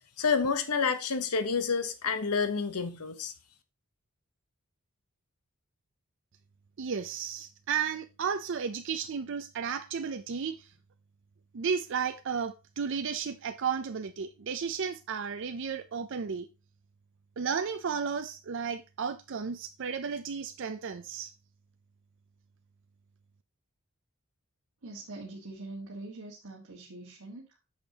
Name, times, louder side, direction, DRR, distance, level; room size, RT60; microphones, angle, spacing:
voice 1, 0.2-3.3, left 5 dB, 85° left, 1.0 m, -29 dB
voice 2, 6.8-10.7 11.5-16.5 17.4-21.3, right 6 dB, 55° right, 0.4 m, -33 dB
voice 3, 24.8-27.6, right 2 dB, 80° right, 1.5 m, -43 dB
8.7 x 6.5 x 2.8 m
head